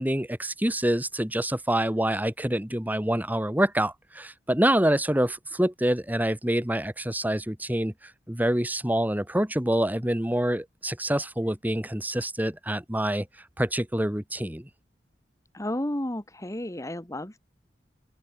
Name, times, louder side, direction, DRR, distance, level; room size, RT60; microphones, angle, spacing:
voice 1, 0.0-13.3 13.6-14.7, right 1 dB, 10° right, 2.4 m, -26 dB
voice 2, 15.5-17.4, left 1 dB, 20° left, 1.8 m, -32 dB
open air
head